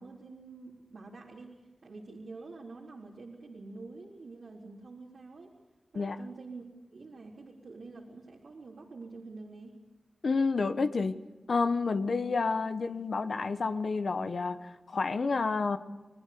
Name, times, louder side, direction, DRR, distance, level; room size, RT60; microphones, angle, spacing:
voice 1, 0.0-5.5 5.9-6.6 6.9-9.8 12.0-12.2, right 3 dB, 85° right, -3 dB, 3.8 m, -47 dB
voice 2, 10.2-11.1 11.5-14.6 14.9-15.8, left 4 dB, 75° left, 9 dB, 1.2 m, -29 dB
29.0 x 20.0 x 6.9 m, 1.2 s
cardioid pair, 50°, 0 cm